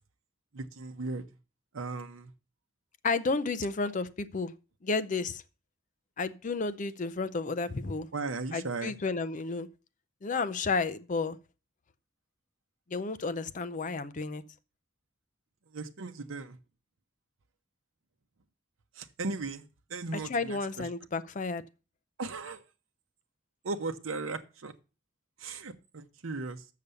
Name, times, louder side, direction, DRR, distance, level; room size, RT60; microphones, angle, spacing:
voice 1, 0.5-1.2 1.7-2.3 8.1-8.9 15.7-16.6 19.0-19.6 19.9-20.9 22.2-22.6 23.6-24.7 25.4-26.6, right 3 dB, 85° right, 0.8 m, -37 dB
voice 2, 3.0-4.5 4.8-5.4 6.2-8.1 8.5-9.7 10.2-11.4 12.9-14.4 20.1-21.6, left 4 dB, 40° left, 0.5 m, -32 dB
6.8 x 6.6 x 6.8 m
head